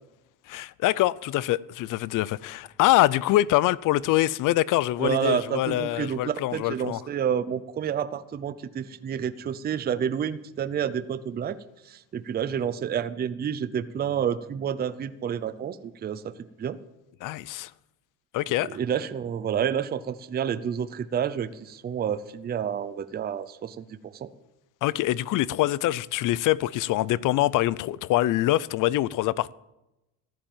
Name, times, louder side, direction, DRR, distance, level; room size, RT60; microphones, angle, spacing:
voice 1, 0.5-7.0 17.2-17.7 18.3-18.7 24.8-29.5, left 15 dB, 50° left, 0.5 m, -24 dB
voice 2, 5.0-11.6 11.8-16.3 16.6-16.8 18.7-24.3, right 8 dB, 25° right, 0.6 m, -29 dB
14.5 x 10.5 x 7.3 m
cardioid pair, 130°, 42 cm